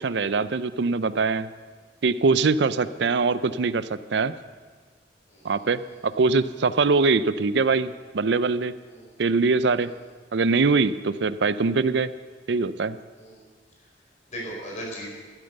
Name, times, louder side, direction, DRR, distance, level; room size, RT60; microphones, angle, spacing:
voice 1, 0.0-1.5 2.0-4.3 5.4-8.7 9.2-9.9 10.3-12.1 12.5-13.0, right 4 dB, 75° right, 14 dB, 0.5 m, -23 dB
voice 2, 5.3-5.6 8.8-9.2 9.7-9.8 13.1-13.4 14.3-15.1, equal, 45° left, -2 dB, 4.8 m, -38 dB
12.5 x 12.0 x 6.6 m, 1.5 s
head